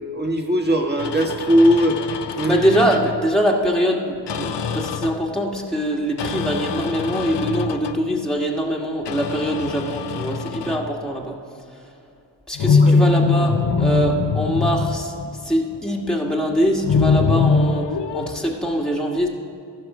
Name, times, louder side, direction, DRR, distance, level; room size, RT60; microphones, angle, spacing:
voice 1, 0.0-2.0 2.4-2.6 12.7-13.1, equal, 20° right, 2 dB, 1.8 m, -19 dB
sound 1, 1.0-3.3 4.3-5.3 6.2-8.1 9.1-10.9 12.6-15.8 16.8-18.3, left 4 dB, 60° left, 0.7 m, -22 dB
voice 2, 2.5-11.4 12.5-15.1 15.4-19.3, equal, ahead, -1 dB, 1.6 m, -23 dB
14.5 x 5.8 x 4.9 m, 2.6 s
cardioid pair, 45°, 48 cm